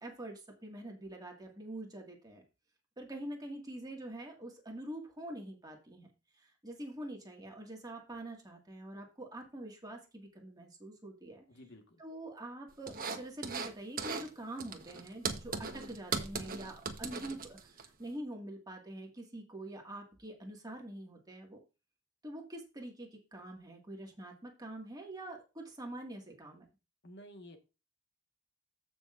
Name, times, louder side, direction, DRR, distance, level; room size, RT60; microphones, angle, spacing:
voice 1, 0.0-2.4 3.0-6.1 6.4-11.4 12.0-21.6 22.2-26.7, right 1 dB, 20° right, 0 dB, 2.0 m, -45 dB
voice 2, 11.5-12.0 27.0-27.6, equal, 55° left, 5 dB, 1.6 m, -52 dB
sound 1, 12.9-13.7 14.0-14.3 14.6-17.9, right 5 dB, 45° right, 1.1 m, -38 dB
14.5 x 6.1 x 2.6 m, 0.30 s
head